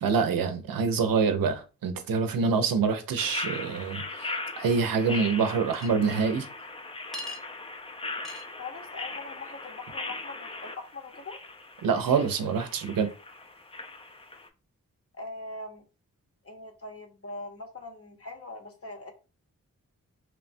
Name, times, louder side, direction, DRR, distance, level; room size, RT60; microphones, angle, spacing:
voice 1, 0.0-4.3 4.6-6.5 11.8-13.1, right 5 dB, 90° right, 0.5 m, -26 dB
sound 1, 3.2-14.5, left 3 dB, 20° left, 0.4 m, -39 dB
Chink clink, 5.7-5.9 7.1-7.4 8.2-8.5, left 2 dB, ahead, 0.8 m, -38 dB
voice 2, 8.6-11.4 15.2-15.8 16.4-19.1, left 2 dB, 45° left, 0.8 m, -41 dB
3.0 x 2.1 x 2.5 m
cardioid pair, 55°, 33 cm